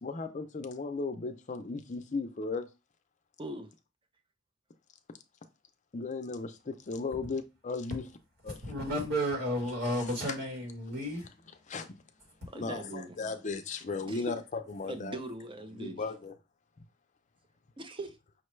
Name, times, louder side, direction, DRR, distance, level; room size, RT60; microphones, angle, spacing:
voice 1, 0.0-2.7 5.9-8.0 8.4-8.6 10.3-10.4 11.7-12.0 12.5-15.2 15.7-16.3, left 4 dB, 35° left, 0.5 m, -36 dB
voice 2, 3.4-3.7 12.5-13.2 14.1-14.4 14.9-16.1 17.8-18.2, right 1 dB, 25° right, 0.5 m, -40 dB
voice 3, 8.5-11.3, equal, 65° right, 1.3 m, -32 dB
5.7 x 2.2 x 3.1 m
head